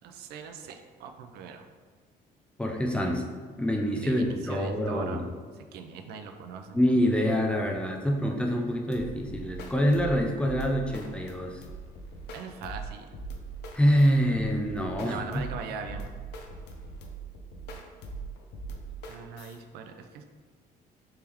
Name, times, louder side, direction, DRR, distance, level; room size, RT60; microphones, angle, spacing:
voice 1, 0.0-1.6 4.0-5.3 5.6-6.8 12.3-13.2 15.0-16.1 19.1-20.2, right 6 dB, 75° right, 6 dB, 0.4 m, -41 dB
voice 2, 2.6-3.2 3.6-5.2 6.7-11.6 13.7-15.4, equal, 5° left, 1 dB, 0.4 m, -26 dB
sound 1, 8.9-19.6, right 3 dB, 85° left, 0.5 m, -41 dB
3.4 x 3.4 x 3.0 m, 1.5 s
cardioid pair, 110°, 17 cm